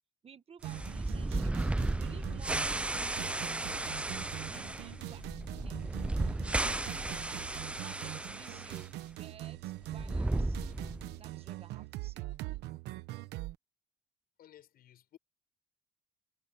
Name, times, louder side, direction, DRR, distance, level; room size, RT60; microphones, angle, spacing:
voice 1, 0.2-1.7 2.0-5.3 5.6-5.8 6.2-10.6 11.2-12.3, right 7 dB, 35° right, 1.3 m, -55 dB
sound 1, 0.6-8.8 9.1-9.2 9.8-11.2, right 2 dB, 5° right, 0.4 m, -34 dB
sound 2, 0.6-13.5, right 17 dB, 85° right, 1.0 m, -43 dB
Thunder / Rain, 1.0-8.6, left 15 dB, 90° left, 1.9 m, -59 dB
voice 2, 14.4-15.2, left 11 dB, 65° left, 7.2 m, -57 dB
cardioid pair, 110°, 17 cm